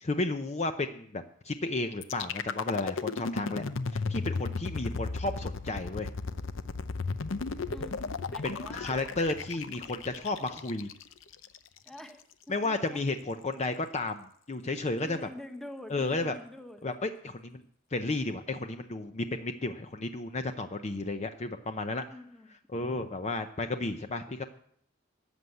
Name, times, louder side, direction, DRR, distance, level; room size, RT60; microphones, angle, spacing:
voice 1, 0.0-3.6 3.9-6.1 8.4-10.9 12.5-15.3 15.9-16.4 16.8-17.6 17.9-22.0 22.7-24.4, left 2 dB, 35° left, 7 dB, 0.7 m, -33 dB
sound 1, 2.0-12.0, left 4 dB, 70° left, 0.7 m, -35 dB
voice 2, 7.7-9.0 11.8-13.0 15.0-16.8 22.1-22.5, left 1 dB, ahead, 6 dB, 1.2 m, -46 dB
13.5 x 7.8 x 8.2 m, 0.65 s
head